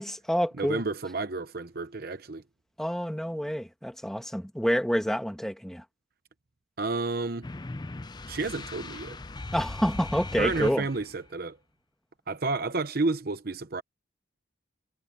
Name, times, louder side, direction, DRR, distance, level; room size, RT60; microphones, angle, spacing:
voice 1, 0.0-0.8 2.8-5.8 9.5-10.8, equal, ahead, 1.5 m, -28 dB
voice 2, 0.6-2.4 6.8-7.5 8.3-9.2 10.4-11.6 12.3-13.8, right 3 dB, 50° right, 0.8 m, -31 dB
sound 1, 7.4-11.3, left 2 dB, 20° left, 0.5 m, -39 dB
head